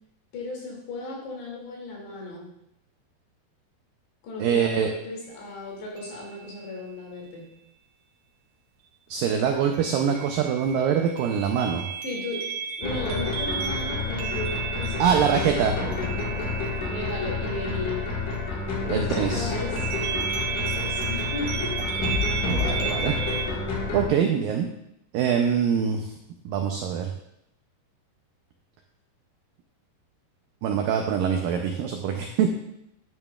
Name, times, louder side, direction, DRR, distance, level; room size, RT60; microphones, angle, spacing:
voice 1, 0.3-2.5 4.2-7.5 12.0-12.4 12.8-16.1 16.9-18.1 18.7-20.2 20.5-21.7, left 2 dB, 85° left, -3 dB, 4.7 m, -35 dB
voice 2, 4.4-4.9 9.1-11.9 15.0-15.8 18.9-19.5 22.5-23.2 23.9-24.7 25.1-26.1 26.5-27.1 30.6-32.6, right 7 dB, 90° right, 3 dB, 1.9 m, -24 dB
sound 1, 5.2-5.3 6.0-6.5 9.7-18.9 19.2-23.5, right 7 dB, 75° right, 1.9 m, -34 dB
sound 2, 12.8-24.1, left 4 dB, 55° left, 2.8 m, -29 dB
10.5 x 9.0 x 2.4 m, 0.78 s
omnidirectional pair, 4.8 m